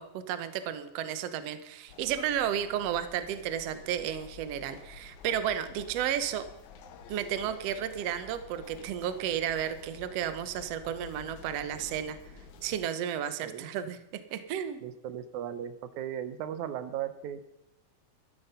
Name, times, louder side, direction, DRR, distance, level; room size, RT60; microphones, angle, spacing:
voice 1, 0.0-6.5 7.1-12.2 12.6-14.8, right 9 dB, 65° right, 11 dB, 1.9 m, -33 dB
sound 1, 1.9-12.8, left 5 dB, 80° left, 2.4 m, -50 dB
voice 2, 14.8-17.5, right 10 dB, 85° right, 11 dB, 2.3 m, -37 dB
14.0 x 12.0 x 5.6 m, 0.87 s
omnidirectional pair, 3.3 m